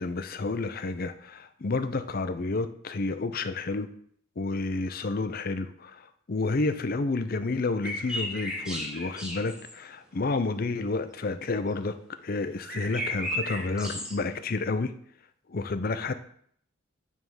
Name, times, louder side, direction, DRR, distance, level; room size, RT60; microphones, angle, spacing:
voice 1, 0.0-3.9 4.4-6.0 6.3-12.0 12.2-14.9 15.5-16.1, left 3 dB, 45° left, 11 dB, 0.5 m, -30 dB
sound 1, 7.8-9.8 12.6-14.2, equal, 5° right, 1.0 m, -34 dB
9.0 x 3.6 x 5.5 m, 0.63 s
head